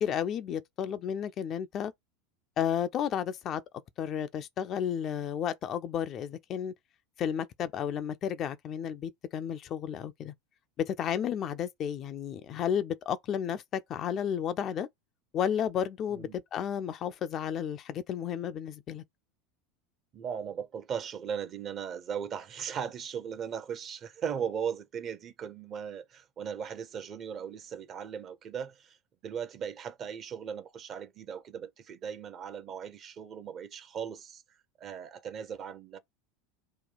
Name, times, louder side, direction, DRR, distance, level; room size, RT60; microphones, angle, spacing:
voice 1, 0.0-1.9 2.6-3.6 4.0-6.7 7.2-10.3 10.8-14.9 15.3-19.0, left 9 dB, 40° left, 0.4 m, -32 dB
voice 2, 20.1-29.0 29.2-34.4 34.8-36.0, right 7 dB, 40° right, 0.8 m, -38 dB
3.0 x 2.3 x 3.9 m
figure-of-eight pair, 80°, 0 cm